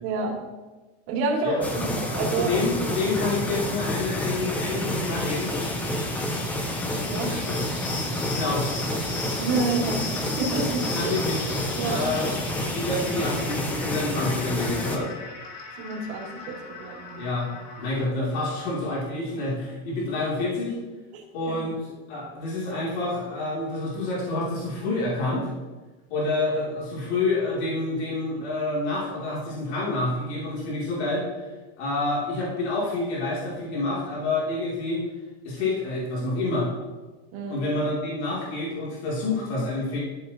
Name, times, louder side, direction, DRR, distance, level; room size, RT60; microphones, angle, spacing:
voice 1, 0.0-0.4 1.1-2.6 7.1-7.3 9.4-11.1 11.8-12.0 15.8-17.3 21.1-21.5 37.3-37.7, right 3 dB, 65° right, -3 dB, 2.9 m, -29 dB
sound 1, 1.4-18.0, left 3 dB, 50° left, 2.1 m, -39 dB
sound 2, 1.6-15.0, left 1 dB, 5° left, 0.4 m, -29 dB
voice 2, 2.4-5.5 7.2-7.6 8.2-8.7 10.9-11.4 11.9-12.2 12.7-15.1 17.1-17.5 17.8-20.8 21.3-21.7 22.1-25.5 26.1-31.3 31.8-35.0 35.4-36.7 37.5-40.0, left 2 dB, 75° left, -5 dB, 3.1 m, -28 dB
13.5 x 7.9 x 3.0 m, 1.2 s
supercardioid pair, 175°, 33 cm